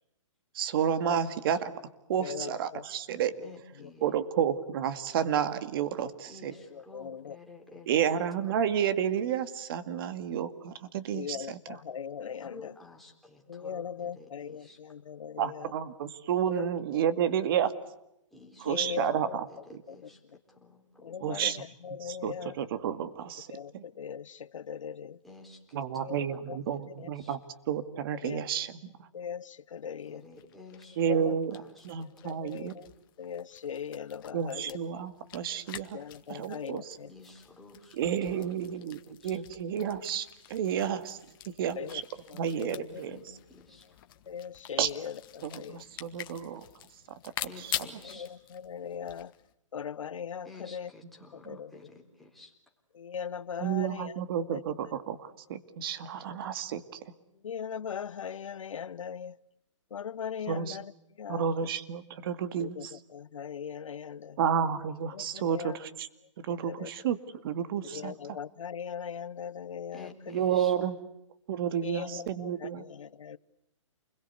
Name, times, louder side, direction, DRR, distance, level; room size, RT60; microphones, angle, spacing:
voice 1, 0.5-1.7 2.1-3.3 4.0-6.5 7.9-11.8 15.4-17.7 18.6-19.5 21.2-21.6 22.0-23.8 25.7-27.4 27.7-28.8 31.0-31.6 31.8-32.8 34.3-36.0 36.3-37.0 37.9-41.2 41.5-42.0 42.3-43.2 44.8-44.9 45.4-46.7 47.4-47.7 51.4-51.6 53.6-57.0 60.5-60.8 61.3-63.0 64.4-66.1 66.4-67.2 67.4-68.4 70.3-71.0 71.5-72.9, right 8 dB, 45° right, 11 dB, 2.1 m, -31 dB
voice 2, 2.2-2.8 3.4-3.5 3.8-3.9 6.5-7.4 11.1-12.7 13.5-15.7 16.5-16.7 18.7-19.4 19.9-20.0 21.0-22.6 23.5-25.2 26.0-26.6 27.0-27.1 28.2-28.4 29.1-30.2 31.1-31.4 32.2-32.9 33.2-34.8 35.9-37.1 41.8-42.0 42.3-43.0 44.3-45.8 48.0-49.3 49.7-50.9 51.4-51.9 52.9-54.6 57.4-59.4 59.9-60.9 61.2-61.5 62.6-64.4 65.1-65.8 66.7-66.9 67.9-70.3 71.8-73.4, left 7 dB, 80° left, 18 dB, 1.0 m, -39 dB
voice 3, 3.4-4.1 6.3-7.9 12.4-14.8 18.3-19.2 19.5-21.2 25.2-26.4 26.7-27.4 30.0-31.9 37.1-38.0 38.3-38.5 39.2-39.4 43.1-44.0 47.4-48.3 50.4-52.5 69.9-70.7, left 3 dB, ahead, -1 dB, 3.9 m, -52 dB
sound 1, 30.0-30.1 30.3-49.5, left 12 dB, 45° left, 2.0 m, -46 dB
29.0 x 22.0 x 8.2 m, 0.84 s
hypercardioid pair, 150°, 16 cm